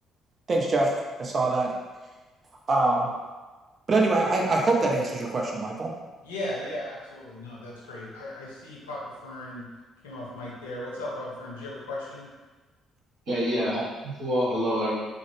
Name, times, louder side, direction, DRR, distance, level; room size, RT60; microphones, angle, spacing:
voice 1, 0.5-0.9 1.2-1.7 2.7-3.1 3.9-5.9, right 2 dB, 35° right, -1 dB, 0.5 m, -24 dB
voice 2, 6.2-9.7 10.0-12.3 13.5-13.7, left 1 dB, 75° left, -5 dB, 0.6 m, -37 dB
voice 3, 13.3-14.9, equal, 55° right, -8 dB, 1.3 m, -27 dB
3.8 x 2.0 x 3.2 m, 1.3 s
figure-of-eight pair, 45°, 0 cm